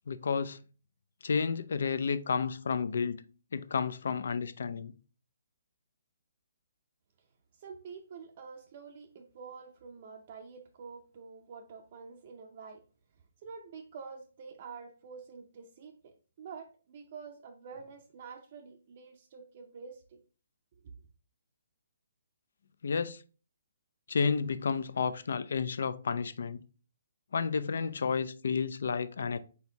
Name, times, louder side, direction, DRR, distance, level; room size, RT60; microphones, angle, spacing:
voice 1, 0.1-0.6 1.2-3.2 3.5-4.9 22.8-23.2 24.1-26.6 27.3-29.4, left 5 dB, 70° left, 0.4 m, -31 dB
voice 2, 7.6-12.8 13.4-20.2, right 5 dB, 40° right, 0.5 m, -48 dB
4.3 x 3.5 x 2.8 m
hypercardioid pair, 160°, 0 cm